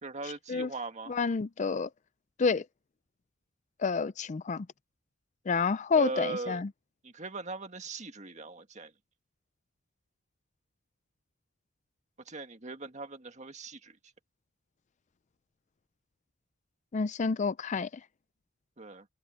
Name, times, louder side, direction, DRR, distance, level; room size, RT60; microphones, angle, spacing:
voice 1, 0.0-1.2 5.9-6.6 7.0-8.9 12.3-14.0 18.8-19.1, right 2 dB, 35° right, 1.8 m, -39 dB
voice 2, 1.1-1.9 2.4-2.6 3.8-4.7 5.5-6.7 16.9-17.9, left 5 dB, 35° left, 0.4 m, -29 dB
head